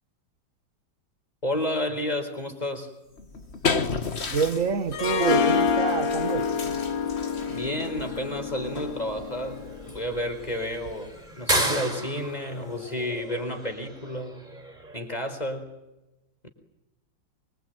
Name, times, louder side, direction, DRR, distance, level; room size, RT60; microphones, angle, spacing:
voice 1, 1.4-2.9 7.5-14.4 14.9-15.7, left 1 dB, 20° left, 4.4 m, -31 dB
sound 1, 3.0-15.0, right 1 dB, 20° right, 5.2 m, -36 dB
sound 2, 3.2-11.3, left 4 dB, 35° left, 1.8 m, -34 dB
voice 2, 4.3-6.4, right 5 dB, 45° right, 2.0 m, -27 dB
Harp, 4.9-10.0, left 5 dB, 90° left, 3.4 m, -27 dB
26.0 x 24.0 x 9.3 m
omnidirectional pair, 1.9 m